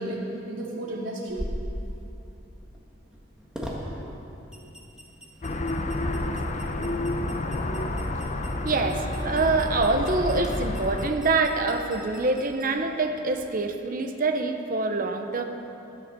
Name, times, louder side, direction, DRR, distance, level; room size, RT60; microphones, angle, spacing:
voice 1, 0.0-1.5 3.8-4.1 4.5-4.6 6.6-6.7 7.1-7.2, right 1 dB, 85° right, -5 dB, 2.8 m, -35 dB
sound 1, 1.3-13.5, equal, 5° right, 1.6 m, -42 dB
sound 2, 5.4-11.1, left 1 dB, 35° left, 0.7 m, -29 dB
voice 2, 8.6-15.4, right 3 dB, 45° right, 5 dB, 0.8 m, -25 dB
12.0 x 9.8 x 6.7 m, 2.9 s
head